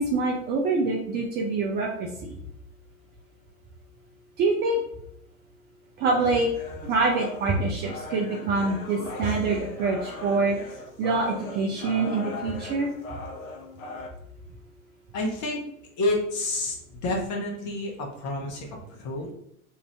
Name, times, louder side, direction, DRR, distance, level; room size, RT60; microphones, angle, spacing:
voice 1, 0.0-2.3 4.4-4.8 6.0-6.5 6.8-10.6 11.0-12.9, right 3 dB, 25° right, -1 dB, 0.4 m, -25 dB
sound 1, 6.1-14.1, left 3 dB, 70° left, 0.8 m, -39 dB
voice 2, 15.1-15.6 16.0-19.3, left 2 dB, 40° left, 0 dB, 1.1 m, -29 dB
2.8 x 2.6 x 3.3 m, 0.74 s
figure-of-eight pair, 90°, 43 cm